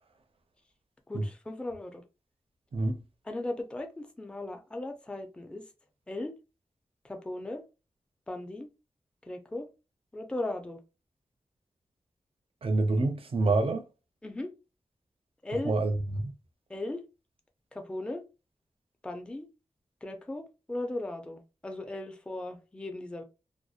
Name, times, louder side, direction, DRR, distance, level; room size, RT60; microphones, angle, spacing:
voice 1, 1.1-2.0 3.3-5.6 6.1-6.4 7.0-7.6 8.3-8.7 9.3-9.7 10.1-10.8 14.2-14.5 15.4-15.7 16.7-17.0 17.7-18.2 19.0-19.5 20.0-23.2, left 2 dB, 10° left, 0.4 m, -37 dB
voice 2, 12.6-13.8 15.6-15.9 16.2-16.3, right 2 dB, 55° right, 0.5 m, -27 dB
2.6 x 2.1 x 2.4 m
wide cardioid pair, 130°, 11 cm